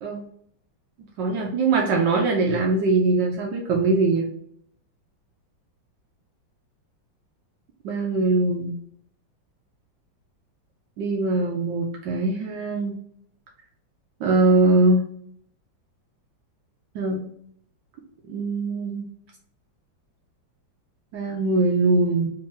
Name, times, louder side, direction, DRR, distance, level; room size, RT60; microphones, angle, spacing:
voice 1, 1.2-4.3 7.8-8.8 11.0-13.0 14.2-15.0 16.9-17.2 18.3-19.1 21.1-22.3, right 3 dB, 75° right, 0 dB, 1.2 m, -22 dB
3.4 x 2.8 x 3.7 m, 0.65 s
omnidirectional pair, 2.1 m